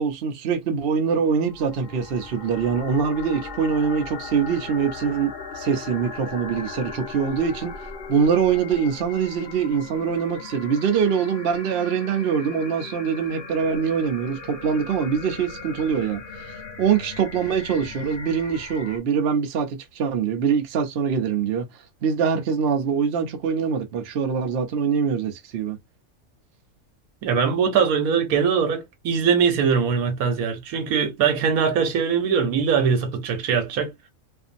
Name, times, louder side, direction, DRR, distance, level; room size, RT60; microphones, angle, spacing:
voice 1, 0.0-7.7 8.1-16.2 16.8-21.7 22.0-25.8, right 6 dB, 55° right, 0.7 m, -23 dB
sound 1, 1.2-19.0, left 4 dB, 45° left, 0.8 m, -38 dB
voice 2, 27.2-33.9, right 6 dB, 80° right, 1.3 m, -21 dB
2.6 x 2.5 x 2.5 m
omnidirectional pair, 1.5 m